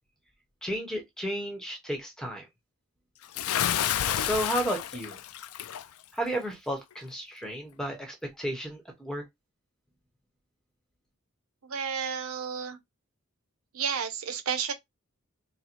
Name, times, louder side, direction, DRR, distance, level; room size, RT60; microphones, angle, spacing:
voice 1, 0.6-2.5 4.1-5.2 6.1-9.2, equal, 5° left, 0.9 m, -33 dB
Bathtub (filling or washing) / Splash splatter, 3.3-5.9, left 10 dB, 85° left, 0.4 m, -29 dB
voice 2, 11.6-12.8 13.7-14.7, right 6 dB, 85° right, 0.8 m, -31 dB
4.0 x 2.1 x 4.4 m
head